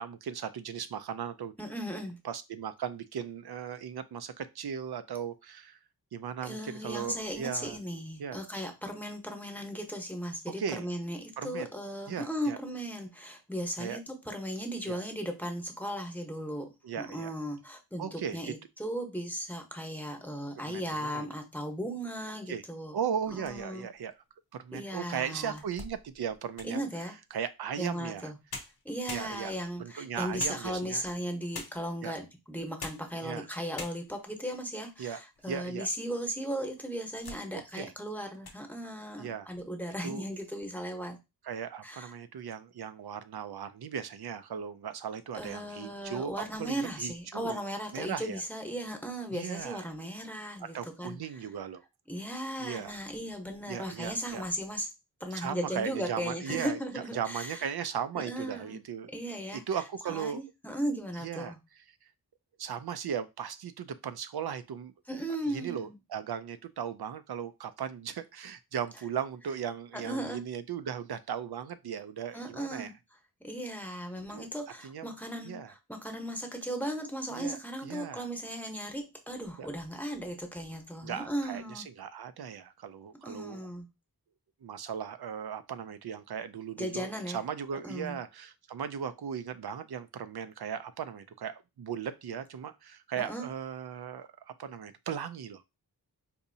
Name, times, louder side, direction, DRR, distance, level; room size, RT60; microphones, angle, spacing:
voice 1, 0.0-1.5 2.2-5.8 6.1-7.8 8.2-8.4 10.6-10.8 11.4-11.7 12.1-12.6 13.8-14.0 14.9-15.0 16.8-17.3 18.0-18.5 20.6-21.3 22.5-22.6 22.9-24.1 24.5-26.9 27.3-28.3 29.1-29.5 29.8-31.0 32.0-32.1 33.2-33.5 35.0-35.2 35.5-35.9 37.7-37.9 39.2-39.5 40.0-40.2 41.4-47.6 47.9-48.4 49.3-49.8 50.7-51.8 52.6-53.0 53.7-54.4 55.3-56.8 57.1-59.1 59.5-60.4 61.2-61.5 62.6-64.9 65.5-72.9 74.3-74.5 74.8-75.1 75.4-75.7 77.3-78.3 79.6-79.7 81.0-83.7 84.6-95.7, right 8 dB, 70° right, 12 dB, 0.5 m, -37 dB
voice 2, 1.6-2.2 6.4-16.7 17.0-22.9 23.3-23.9 24.7-25.6 26.6-27.1 27.8-28.3 28.8-41.2 41.8-42.1 45.3-51.2 52.1-54.9 55.2-57.6 58.2-58.8 59.1-59.6 60.1-61.6 65.1-66.0 70.0-70.4 72.3-72.9 73.4-81.9 83.2-83.9 86.8-87.4 87.8-88.2 93.2-93.5, equal, 5° left, 4 dB, 0.9 m, -37 dB
sound 1, 23.2-23.9 24.5-24.6 25.2-26.9 28.1-28.2 28.5-29.7 30.4-31.1 31.5-32.0 32.6-33.2 33.4-33.5 33.7-34.3 34.9-35.7 36.0-36.1 36.8-37.5 37.8-38.0 38.3-38.6, left 4 dB, 70° left, 0.7 m, -45 dB
4.1 x 2.6 x 2.7 m, 0.24 s
wide cardioid pair, 65°, 39 cm